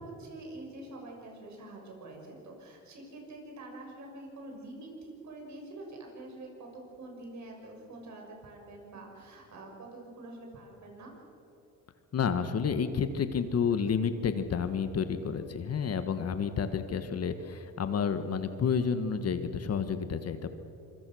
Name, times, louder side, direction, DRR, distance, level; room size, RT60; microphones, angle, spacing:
voice 1, 0.0-11.1, right 2 dB, 55° right, 1 dB, 6.4 m, -46 dB
voice 2, 12.1-20.5, left 6 dB, 45° left, 10 dB, 1.5 m, -30 dB
26.0 x 23.0 x 6.4 m, 2.9 s
cardioid pair, 95°, 35 cm